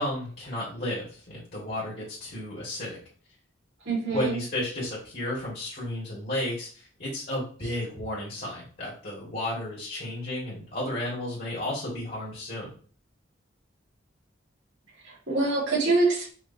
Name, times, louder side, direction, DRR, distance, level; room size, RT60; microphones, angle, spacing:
voice 1, 0.0-3.0 4.1-12.7, left 1 dB, 50° left, -6 dB, 1.6 m, -33 dB
voice 2, 3.9-4.4 15.0-16.3, right 3 dB, 75° right, -5 dB, 2.0 m, -25 dB
5.0 x 3.1 x 2.6 m, 0.43 s
head